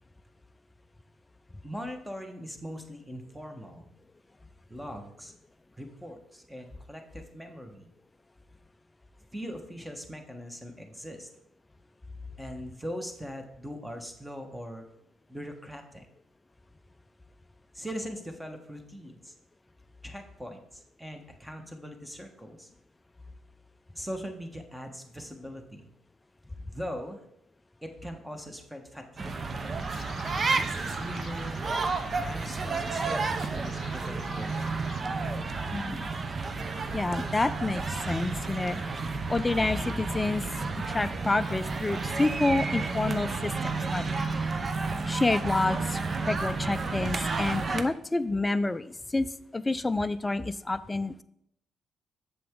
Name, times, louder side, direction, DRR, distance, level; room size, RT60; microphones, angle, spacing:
voice 1, 1.6-3.9 4.7-5.3 5.8-7.9 9.3-11.3 12.4-14.9 15.3-16.1 17.7-19.3 20.0-22.7 23.9-25.9 26.7-27.2 27.8-29.5 30.9-31.7 32.2-34.7, equal, 5° right, 5 dB, 1.3 m, -41 dB
sound 1, 29.2-47.8, right 4 dB, 40° right, 0.7 m, -31 dB
sound 2, 29.8-35.0, left 6 dB, 55° left, 0.7 m, -50 dB
voice 2, 35.7-36.1 36.9-38.8 39.3-40.4 40.9-44.5 45.1-49.3 49.5-51.2, left 2 dB, 15° left, 12 dB, 0.4 m, -29 dB
7.4 x 7.0 x 3.7 m, 0.73 s
cardioid pair, 90°, 0 cm